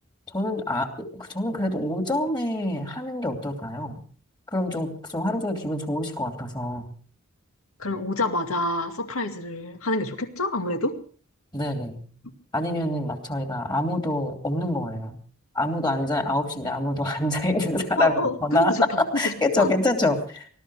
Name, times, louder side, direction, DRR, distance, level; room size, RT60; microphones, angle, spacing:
voice 1, 0.3-4.0 4.5-6.9 11.5-12.0 12.5-15.2 15.5-18.1 18.4-20.5, left 1 dB, 20° left, 4 dB, 2.9 m, -26 dB
voice 2, 7.8-11.0 18.0-19.7, left 1 dB, 70° left, 6 dB, 2.3 m, -27 dB
20.0 x 13.5 x 4.9 m, 0.44 s
head